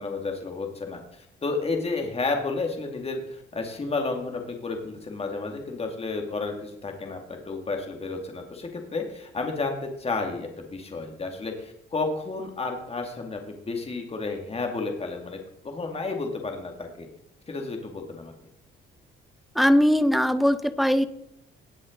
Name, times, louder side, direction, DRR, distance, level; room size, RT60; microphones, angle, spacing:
voice 1, 0.0-15.4 15.6-17.1 17.5-18.3, left 3 dB, 30° left, 3 dB, 2.3 m, -31 dB
voice 2, 19.6-21.0, equal, ahead, 12 dB, 0.7 m, -20 dB
18.5 x 6.2 x 3.9 m, 0.77 s
cardioid pair, 90°, 20 cm